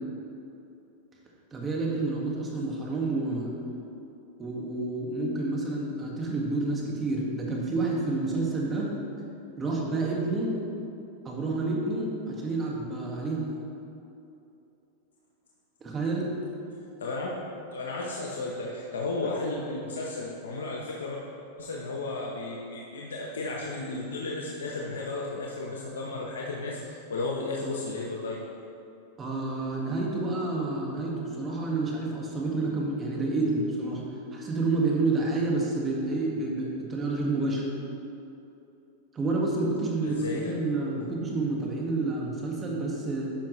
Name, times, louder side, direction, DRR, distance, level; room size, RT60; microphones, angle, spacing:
voice 1, 1.5-3.5 4.4-8.9 9.6-10.5 11.2-13.5 15.8-16.3 29.2-34.0 34.3-37.6 39.1-43.3, right 2 dB, 25° right, -2 dB, 1.7 m, -29 dB
voice 2, 17.7-21.2 21.6-28.4 40.0-40.5, left 2 dB, 90° left, -2 dB, 0.8 m, -34 dB
10.0 x 5.7 x 3.1 m, 2.8 s
hypercardioid pair, 115°, 0 cm